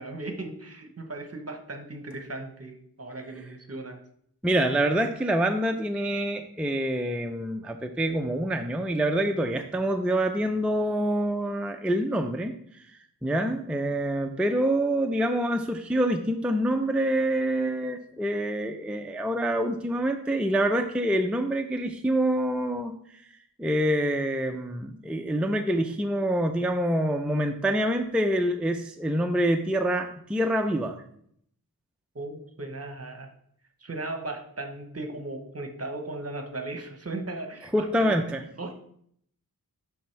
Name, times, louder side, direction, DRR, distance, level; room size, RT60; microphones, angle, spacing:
voice 1, 0.0-4.0 32.1-33.3 33.8-38.1 38.6-38.7, right 2 dB, 40° right, 5 dB, 0.9 m, -37 dB
voice 2, 4.4-23.2 23.6-31.0 37.7-38.4, right 1 dB, 5° right, 5 dB, 0.4 m, -26 dB
10.0 x 3.5 x 3.2 m, 0.68 s
wide cardioid pair, 60°, 36 cm